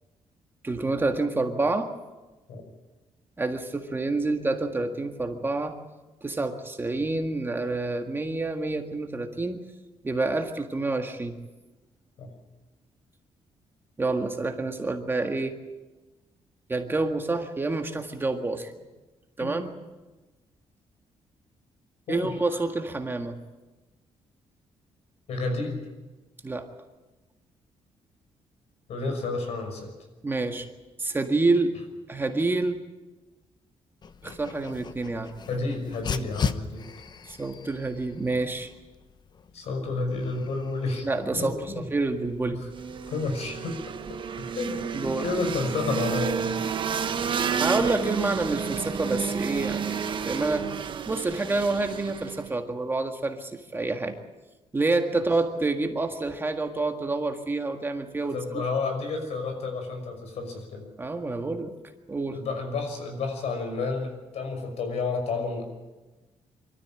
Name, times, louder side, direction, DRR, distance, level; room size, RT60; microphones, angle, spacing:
voice 1, 0.6-1.9 3.4-5.7 6.2-9.6 10.0-11.3 14.0-15.5 16.7-18.7 19.4-19.7 22.1-23.4 26.4-26.7 30.2-30.7 31.0-31.8 32.1-32.8 34.2-35.3 37.3-38.7 41.0-42.6 44.9-45.3 47.6-50.6 51.1-54.2 54.7-58.6 61.0-61.7 62.1-62.4, right 3 dB, 20° right, 5 dB, 1.7 m, -28 dB
voice 2, 25.3-25.9 28.9-29.9 35.5-36.9 39.5-41.9 42.5-42.6 43.1-43.8 44.1-44.7 45.0-46.5 58.2-60.9 62.3-65.6, left 3 dB, 75° left, 5 dB, 5.8 m, -31 dB
Dog, 34.0-43.1, left 6 dB, 40° left, 0.9 m, -38 dB
sound 1, 42.7-52.5, right 7 dB, 45° right, 1.2 m, -31 dB
25.0 x 13.5 x 8.8 m, 1.1 s
cardioid pair, 130°, 11 cm